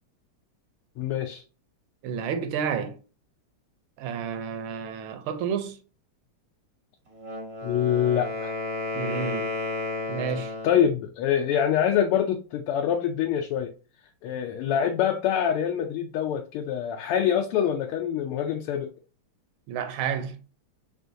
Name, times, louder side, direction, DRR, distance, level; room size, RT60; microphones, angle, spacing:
voice 1, 1.0-1.4 7.6-8.5 10.6-13.7 14.2-18.9, left 9 dB, 85° left, 1.5 m, -25 dB
voice 2, 2.0-3.0 4.0-5.8 8.9-9.6 10.1-10.5 19.7-20.4, right 7 dB, 75° right, 1.5 m, -30 dB
Wind instrument woodwind instrument, 7.1-10.9, left 2 dB, 50° right, 0.7 m, -32 dB
4.3 x 3.5 x 2.6 m
omnidirectional pair, 2.4 m